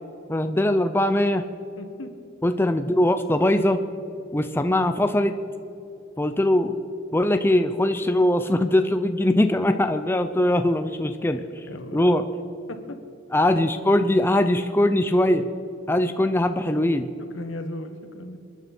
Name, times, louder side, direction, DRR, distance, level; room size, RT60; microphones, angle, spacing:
voice 1, 0.3-1.5 2.4-3.8 4.3-5.3 6.2-6.8 7.1-11.4 11.9-12.2 13.3-15.5 15.9-17.1, left 1 dB, 10° left, 8 dB, 0.5 m, -21 dB
voice 2, 1.8-2.2 11.3-12.2 12.7-13.0 17.3-18.4, left 1 dB, 75° left, 7 dB, 1.5 m, -37 dB
27.0 x 10.0 x 4.4 m, 2.8 s
head